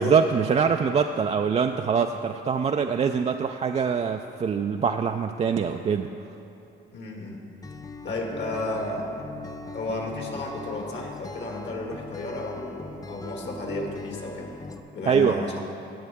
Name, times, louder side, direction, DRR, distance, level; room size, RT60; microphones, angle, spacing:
voice 1, 0.0-6.1 15.1-15.4, right 6 dB, 35° right, 5 dB, 0.4 m, -24 dB
voice 2, 6.9-7.4 8.0-9.2 9.7-14.5 14.9-15.6, left 2 dB, 65° left, 0 dB, 2.0 m, -33 dB
Acoustic guitar, 7.6-14.8, left 3 dB, 20° left, 0.6 m, -40 dB
17.5 x 6.6 x 3.5 m, 2.9 s
cardioid pair, 90°, 20 cm